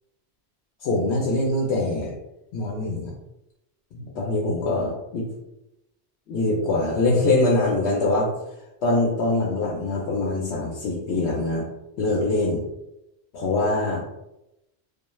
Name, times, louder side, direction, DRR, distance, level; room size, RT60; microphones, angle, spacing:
voice 1, 0.8-2.1 2.5-3.1 3.9-5.3 6.3-8.3 8.8-11.7 12.0-12.7 13.3-14.0, left 2 dB, 85° left, -3 dB, 0.9 m, -23 dB
2.3 x 2.2 x 3.0 m, 0.90 s
omnidirectional pair, 1.1 m